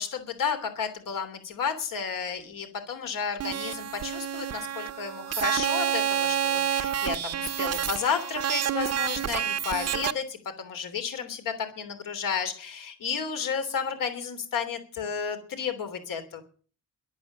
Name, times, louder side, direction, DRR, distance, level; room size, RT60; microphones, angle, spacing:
voice 1, 0.0-16.4, left 6 dB, 70° left, 8 dB, 3.2 m, -32 dB
sound 1, 3.4-10.1, right 9 dB, 45° right, 0.7 m, -29 dB
13.5 x 12.0 x 7.3 m, 0.41 s
wide cardioid pair, 180°, 34 cm